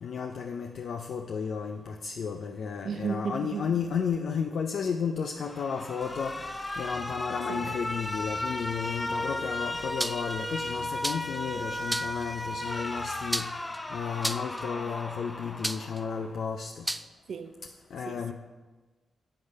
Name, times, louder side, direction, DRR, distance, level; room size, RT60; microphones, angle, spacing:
voice 1, 0.0-13.5 13.9-16.9 17.9-18.3, left 6 dB, 75° left, 4 dB, 0.5 m, -33 dB
voice 2, 2.8-3.7 7.5-7.7 17.3-17.6 18.1-18.3, right 6 dB, 70° right, 10 dB, 0.7 m, -34 dB
Alarm, 5.4-16.4, left 1 dB, 25° left, 0.8 m, -35 dB
sound 1, 6.0-13.4, right 4 dB, 50° right, 1.3 m, -51 dB
sound 2, 10.0-10.3 11.0-11.4 11.9-12.2 13.3-13.8 14.2-14.6 15.6-16.0 16.9-17.1, right 1 dB, 10° right, 0.4 m, -31 dB
8.6 x 8.1 x 5.4 m, 1.3 s
cardioid pair, 65°, 0 cm